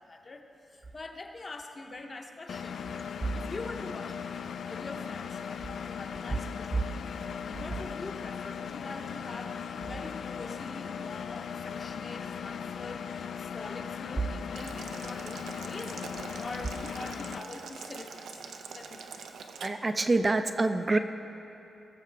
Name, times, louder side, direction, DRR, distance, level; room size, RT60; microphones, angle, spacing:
voice 1, 0.0-2.9 3.3-7.2 7.6-18.4 18.7-19.1, left 2 dB, 30° left, 3 dB, 0.8 m, -44 dB
Engine, 2.5-17.4, left 7 dB, 60° left, 0.4 m, -38 dB
Boiling, 14.5-19.7, right 5 dB, 75° right, 0.6 m, -44 dB
voice 2, 19.6-21.0, right 2 dB, 20° right, 9 dB, 0.5 m, -26 dB
21.0 x 7.0 x 3.4 m, 2.9 s
wide cardioid pair, 150°, 0 cm